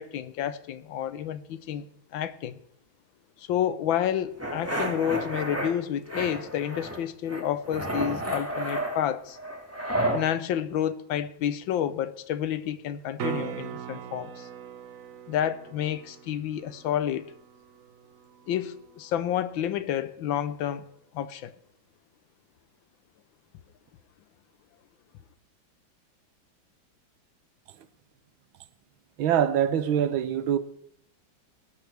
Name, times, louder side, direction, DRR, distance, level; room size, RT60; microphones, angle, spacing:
voice 1, 0.0-1.9 2.1-2.6 3.4-9.4 10.1-14.5 15.3-17.3 18.5-20.8 21.1-21.5, left 10 dB, 80° left, 1.5 m, -30 dB
sound 1, 4.4-5.7 6.1-7.0 7.3-10.2, right 1 dB, 5° right, 2.0 m, -31 dB
sound 2, 13.2-19.2 23.9-24.0, right 8 dB, 60° right, 0.9 m, -40 dB
voice 2, 29.2-30.6, right 9 dB, 85° right, 1.6 m, -24 dB
20.5 x 12.5 x 3.4 m
omnidirectional pair, 2.1 m